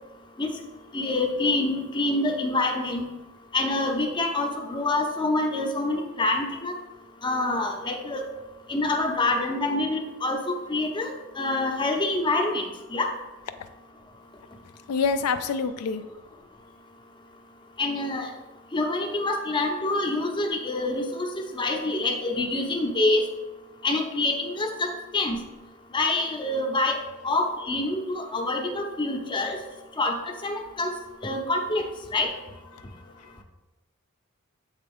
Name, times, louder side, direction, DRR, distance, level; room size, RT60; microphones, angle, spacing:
voice 1, 0.9-3.0 3.5-6.7 7.2-8.3 8.7-11.1 11.4-12.6 12.9-13.1 17.8-18.3 18.7-21.3 21.5-23.3 23.8-25.4 25.9-29.6 30.0-30.9 31.2-31.8 32.1-32.3, left 2 dB, 20° left, 3 dB, 0.6 m, -26 dB
voice 2, 14.9-16.0 32.7-32.9 33.2-33.4, left 5 dB, 80° left, 9 dB, 0.4 m, -27 dB
8.0 x 3.4 x 3.5 m, 1.1 s
head